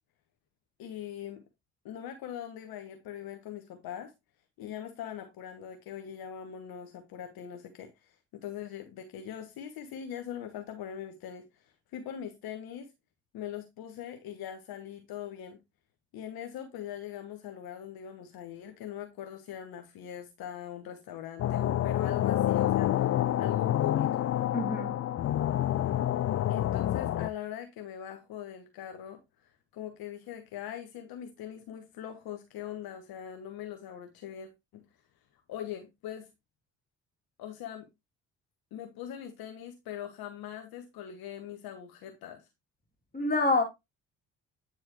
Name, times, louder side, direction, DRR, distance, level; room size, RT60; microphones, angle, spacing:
voice 1, 0.8-1.4 1.8-4.1 4.6-12.9 13.3-15.6 16.1-24.3 26.5-34.8 35.5-36.3 37.4-37.9 38.7-42.5, left 10 dB, 65° left, 1.2 m, -42 dB
sound 1, 21.4-27.3, left 12 dB, 40° left, 0.5 m, -28 dB
voice 2, 24.5-24.9 43.1-43.6, left 2 dB, 25° left, 2.8 m, -26 dB
9.0 x 4.6 x 3.0 m
hypercardioid pair, 45°, 39 cm